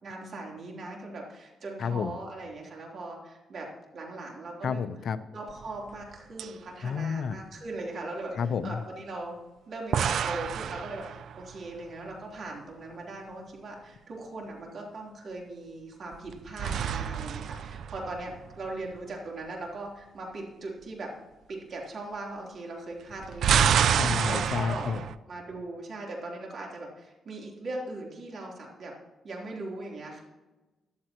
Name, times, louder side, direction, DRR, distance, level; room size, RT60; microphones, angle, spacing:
voice 1, 0.0-3.7 3.9-4.9 5.3-9.4 9.7-21.1 21.5-23.7 24.2-25.0 25.3-28.9 29.2-30.2, right 2 dB, 55° right, -1 dB, 3.5 m, -39 dB
voice 2, 1.8-2.1 4.6-5.2 6.8-7.4 8.4-8.8 23.8-25.0, left 6 dB, 60° left, 12 dB, 0.7 m, -30 dB
sound 1, 5.5-6.1 6.4-6.5 9.9-11.6 16.1-18.7 23.1-25.1, right 8 dB, 70° right, 0.4 m, -28 dB
14.0 x 11.5 x 3.0 m, 1.1 s
cardioid pair, 115°, 0 cm